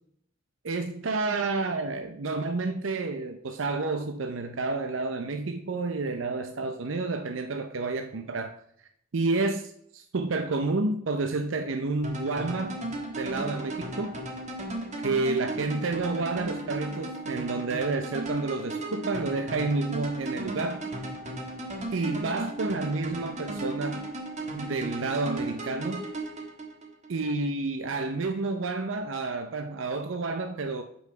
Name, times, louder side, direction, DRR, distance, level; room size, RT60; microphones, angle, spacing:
voice 1, 0.6-8.6 9.1-12.8 13.2-14.2 15.0-20.8 21.9-24.1 24.5-26.1 27.1-30.8, right 3 dB, 85° right, 7 dB, 0.6 m, -30 dB
sound 1, 12.0-27.1, right 2 dB, 40° right, 1.3 m, -35 dB
6.2 x 5.6 x 5.6 m, 0.70 s
head